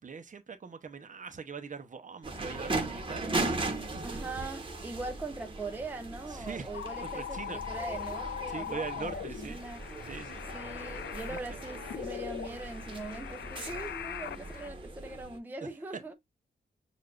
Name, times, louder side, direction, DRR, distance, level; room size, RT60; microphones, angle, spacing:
voice 1, 0.0-4.3 6.3-6.7 7.0-7.6 8.5-9.6 10.1-10.4 11.3-11.4 15.6-15.7, right 5 dB, 45° right, 0.7 m, -42 dB
sound 1, 2.2-15.4, right 2 dB, 25° right, 1.0 m, -38 dB
voice 2, 4.0-9.8 10.5-16.1, right 3 dB, 10° right, 0.6 m, -41 dB
sound 2, 6.7-14.7, left 10 dB, 85° left, 0.4 m, -41 dB
6.7 x 2.5 x 2.4 m
wide cardioid pair, 170°, 19 cm